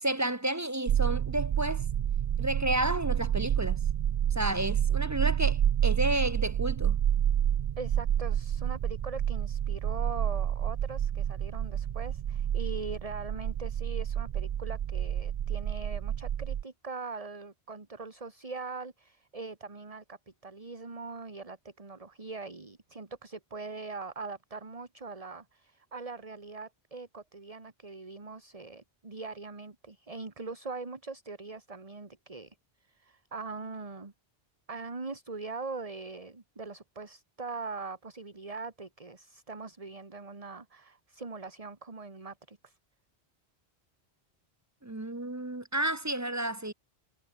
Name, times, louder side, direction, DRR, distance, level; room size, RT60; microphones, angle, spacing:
voice 1, 0.0-1.8 2.4-3.8 4.3-7.0 44.8-46.7, right 1 dB, 15° right, 0.8 m, -31 dB
sound 1, 0.9-16.6, right 10 dB, 55° right, 0.5 m, -29 dB
voice 2, 7.8-32.6 32.9-34.1 34.7-42.8, right 3 dB, 35° right, 1.8 m, -41 dB
omnidirectional pair, 1.1 m